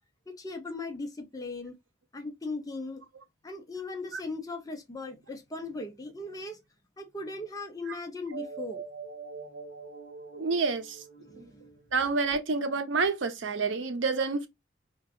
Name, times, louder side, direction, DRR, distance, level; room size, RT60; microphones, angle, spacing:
voice 1, 0.3-1.8 2.1-3.0 3.4-6.6 7.0-8.8 11.2-11.6, left 3 dB, 20° left, 0.6 m, -38 dB
sound 1, 8.3-12.2, right 5 dB, 55° right, 1.5 m, -43 dB
voice 2, 10.3-11.0 11.4-11.5 11.9-14.5, right 4 dB, 80° right, 0.6 m, -28 dB
3.8 x 2.3 x 2.3 m
head